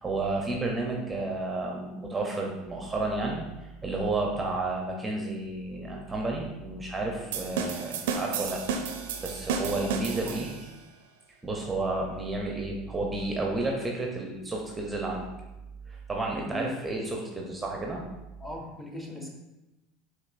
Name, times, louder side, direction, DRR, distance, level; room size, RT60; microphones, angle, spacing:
voice 1, 0.0-8.6 9.2-10.5 11.4-15.3 15.9-18.0, right 2 dB, 15° right, -1 dB, 0.6 m, -31 dB
sound 1, 7.3-10.7, right 6 dB, 75° right, 0.4 m, -32 dB
voice 2, 9.7-10.4 16.4-16.8 18.4-19.3, left 1 dB, 15° left, 0 dB, 1.0 m, -39 dB
5.1 x 3.3 x 2.5 m, 0.99 s
hypercardioid pair, 80°, 0 cm